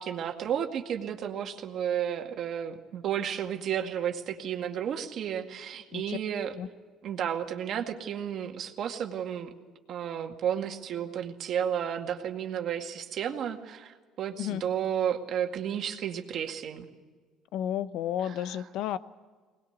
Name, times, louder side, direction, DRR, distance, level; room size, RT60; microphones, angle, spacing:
voice 1, 0.0-6.6 7.0-9.5 9.9-16.9 18.2-18.7, right 9 dB, 60° right, 4 dB, 2.1 m, -32 dB
voice 2, 17.5-19.0, left 11 dB, 75° left, 15 dB, 0.8 m, -32 dB
21.0 x 20.0 x 8.1 m, 1.5 s
supercardioid pair, 95°, 0 cm